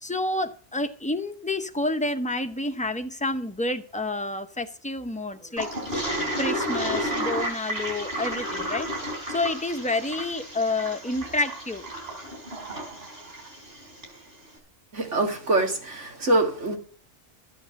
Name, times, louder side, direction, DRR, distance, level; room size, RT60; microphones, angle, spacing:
voice 1, 0.0-8.9 9.3-11.8, left 2 dB, 5° left, 7 dB, 0.9 m, -29 dB
Toilet flush, 5.6-14.2, right 1 dB, 55° right, 4.7 m, -32 dB
voice 2, 14.9-16.8, right 2 dB, 85° right, 3 dB, 2.4 m, -24 dB
13.5 x 8.6 x 6.5 m, 0.43 s
omnidirectional pair, 1.2 m